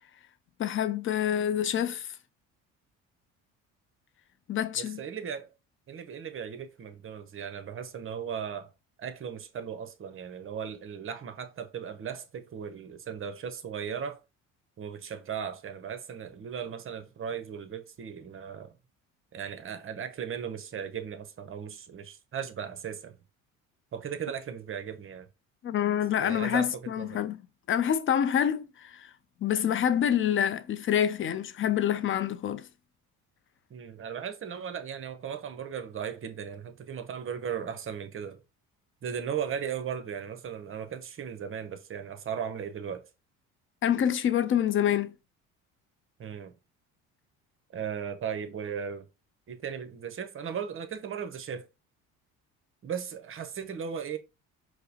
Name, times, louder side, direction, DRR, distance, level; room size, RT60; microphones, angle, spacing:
voice 1, 0.6-2.1 4.5-5.0 25.6-27.4 27.7-29.1 29.4-32.7 43.8-45.1, left 9 dB, 35° left, 0.4 m, -27 dB
voice 2, 4.8-5.5 5.9-8.7 9.0-14.2 14.8-18.7 19.3-23.1 23.9-25.3 26.2-27.2 33.7-38.4 39.0-43.1 46.2-46.5 47.7-49.1 49.5-51.7 52.8-54.2, right 7 dB, 35° right, 0.7 m, -37 dB
4.7 x 2.1 x 2.8 m
supercardioid pair, 75°, 35 cm